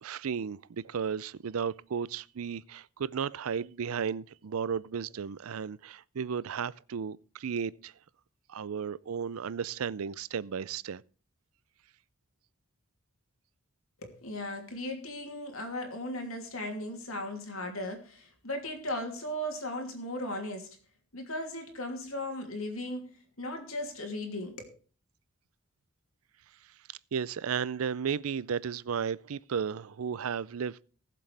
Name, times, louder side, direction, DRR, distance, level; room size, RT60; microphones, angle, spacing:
voice 1, 0.0-7.9 8.5-11.0 27.1-30.8, right 7 dB, 85° right, 0.5 m, -34 dB
voice 2, 14.0-20.7 21.1-24.8, left 1 dB, 80° left, 2.9 m, -37 dB
19.5 x 7.5 x 3.4 m
head